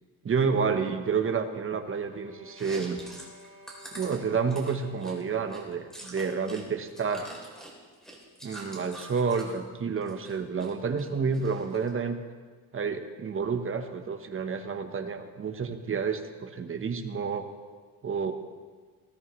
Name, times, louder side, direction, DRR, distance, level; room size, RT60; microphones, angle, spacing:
voice 1, 0.2-3.0 3.9-7.3 8.4-12.2 12.7-17.5 18.0-18.3, right 5 dB, 35° right, 6 dB, 1.1 m, -29 dB
sound 1, 1.7-5.9, right 1 dB, 50° left, 4.4 m, -54 dB
Chewing mastication, 2.5-6.6 6.9-9.6 10.0-10.7 11.0-11.9, right 1 dB, ahead, 3.2 m, -45 dB
20.0 x 16.0 x 3.2 m, 1.5 s
cardioid pair, 150°, 36 cm